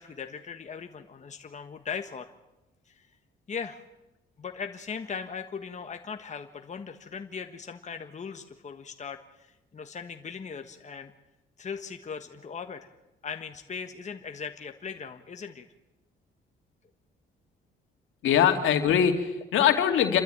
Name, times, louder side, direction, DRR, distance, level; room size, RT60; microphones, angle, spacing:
voice 1, 0.0-2.3 2.9-3.1 3.5-3.8 4.4-11.1 11.6-12.9 13.2-15.7, left 6 dB, 35° left, 6 dB, 1.5 m, -39 dB
voice 2, 18.2-20.2, left 9 dB, 80° left, 5 dB, 2.6 m, -22 dB
28.5 x 13.0 x 9.0 m, 0.99 s
cardioid pair, 90°, 20 cm